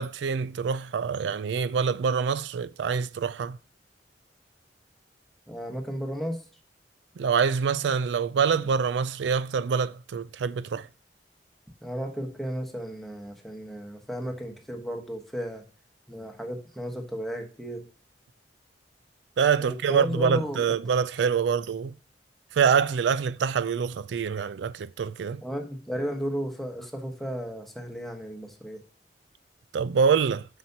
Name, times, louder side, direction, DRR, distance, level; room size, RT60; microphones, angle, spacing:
voice 1, 0.0-3.6 7.2-10.9 19.4-21.9 22.5-25.4 29.7-30.5, right 6 dB, 85° right, 0.4 m, -25 dB
voice 2, 5.5-6.4 11.8-15.6 16.1-17.8 19.6-20.6 25.4-28.8, equal, ahead, 1.2 m, -34 dB
7.3 x 5.8 x 2.8 m
head